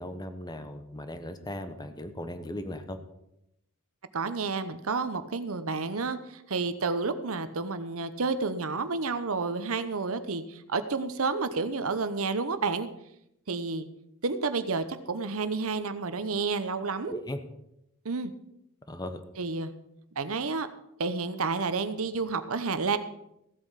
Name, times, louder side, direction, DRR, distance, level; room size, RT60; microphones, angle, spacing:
voice 1, 0.0-3.0 17.0-17.4 18.9-19.2, left 1 dB, 20° left, 9 dB, 1.0 m, -37 dB
voice 2, 4.1-12.9 13.5-13.9 14.2-17.1 18.0-18.3 19.4-19.7 20.2-20.7 21.0-23.0, right 4 dB, 65° right, 11 dB, 0.9 m, -30 dB
15.5 x 8.1 x 5.7 m, 0.83 s
head